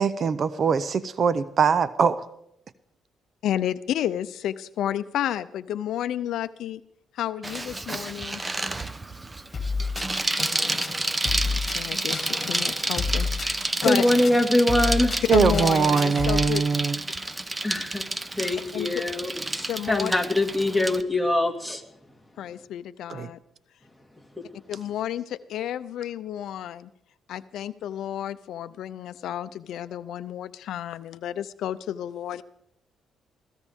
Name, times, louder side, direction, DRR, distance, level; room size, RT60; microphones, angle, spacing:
voice 1, 0.0-2.2 15.3-17.0 23.1-23.3, right 6 dB, 50° right, 15 dB, 0.7 m, -22 dB
voice 2, 3.4-6.8 7.1-8.4 11.4-13.5 13.8-14.1 15.3-16.6 18.7-19.0 19.7-20.1 22.4-23.4 24.7-26.9 27.3-32.4, left 11 dB, 75° left, 14 dB, 0.5 m, -31 dB
Bicycle, 7.4-21.0, right 2 dB, 20° right, 0.9 m, -30 dB
sound 1, 9.5-16.4, left 4 dB, 35° left, 2.6 m, -30 dB
voice 3, 13.4-15.1 17.6-18.1 18.4-21.8, left 1 dB, ahead, 1 dB, 2.3 m, -23 dB
22.0 x 16.0 x 3.6 m, 0.77 s
cardioid pair, 90°, 0 cm